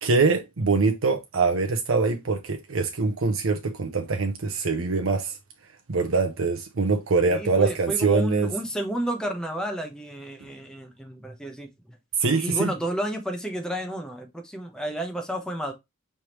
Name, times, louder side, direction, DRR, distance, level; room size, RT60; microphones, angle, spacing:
voice 1, 0.0-5.3 5.9-8.5 12.2-12.7, right 4 dB, 70° right, 0.7 m, -23 dB
voice 2, 7.3-12.0 12.4-15.7, right 1 dB, 5° left, 0.9 m, -31 dB
4.6 x 3.4 x 3.0 m
head